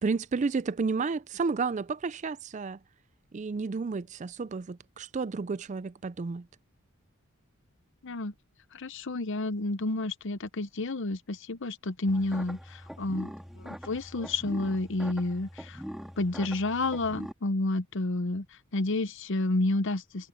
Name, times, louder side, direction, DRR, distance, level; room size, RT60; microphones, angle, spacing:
voice 1, 0.0-2.8 3.3-6.5, right 4 dB, 35° right, 0.4 m, -31 dB
voice 2, 8.7-15.8 16.2-18.5 18.7-20.3, left 2 dB, 55° left, 0.8 m, -30 dB
sound 1, 12.1-17.3, equal, ahead, 2.5 m, -42 dB
head